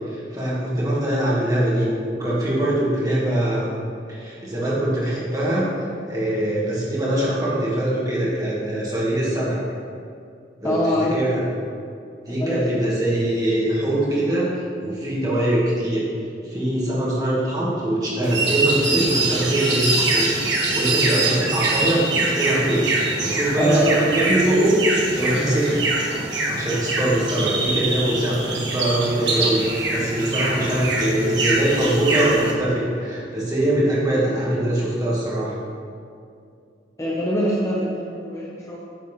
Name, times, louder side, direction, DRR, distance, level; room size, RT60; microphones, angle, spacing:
voice 1, 0.1-1.9 2.2-3.7 4.1-5.7 6.0-9.6 10.6-10.8 11.1-11.4 12.3-16.1 16.4-20.3 20.6-25.9 26.5-35.5, right 1 dB, 20° right, -7 dB, 2.1 m, -22 dB
voice 2, 10.6-11.2 12.3-12.6 23.6-24.3 37.0-38.8, left 1 dB, 15° left, -5 dB, 0.9 m, -24 dB
sound 1, 18.2-32.5, right 2 dB, 65° right, 1.6 m, -24 dB
9.4 x 4.6 x 5.7 m, 2.4 s
head